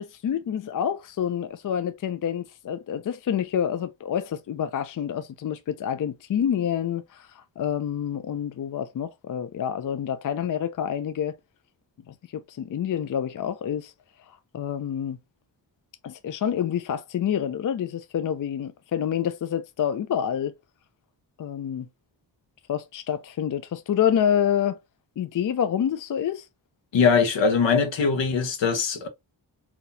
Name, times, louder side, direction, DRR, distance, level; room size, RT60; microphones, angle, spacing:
voice 1, 0.0-11.4 12.1-13.9 14.5-15.2 16.0-20.5 21.4-21.9 22.7-24.8 25.2-26.5, left 9 dB, 45° left, 0.5 m, -27 dB
voice 2, 26.9-29.1, left 5 dB, 75° left, 1.1 m, -21 dB
3.9 x 2.9 x 2.6 m
cardioid pair, 75°, 45 cm